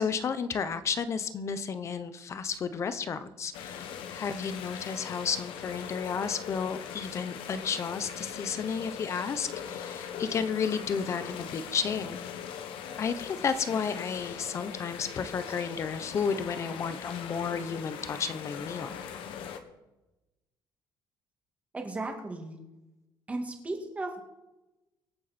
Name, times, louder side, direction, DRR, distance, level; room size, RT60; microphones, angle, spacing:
voice 1, 0.0-12.2 13.0-18.9, left 6 dB, 35° left, 12 dB, 0.9 m, -32 dB
sound 1, 3.5-19.6, left 8 dB, 90° left, 1.4 m, -40 dB
voice 2, 21.7-22.6 23.3-24.2, right 2 dB, 15° right, 2 dB, 2.1 m, -35 dB
24.5 x 8.3 x 4.3 m, 1.0 s
cardioid pair, 170°, 9 cm